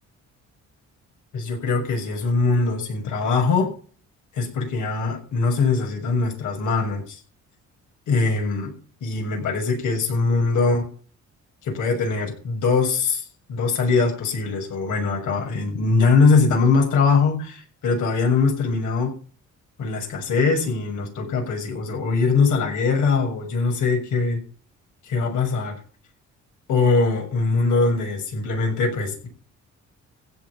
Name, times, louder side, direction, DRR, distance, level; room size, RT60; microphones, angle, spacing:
voice 1, 1.3-3.7 4.3-7.2 8.1-8.7 9.0-10.9 11.6-19.1 19.8-24.4 25.0-25.7 26.7-29.3, left 4 dB, 80° left, 1 dB, 6.6 m, -22 dB
16.0 x 5.4 x 9.7 m, 0.42 s
cardioid pair, 90°, 30 cm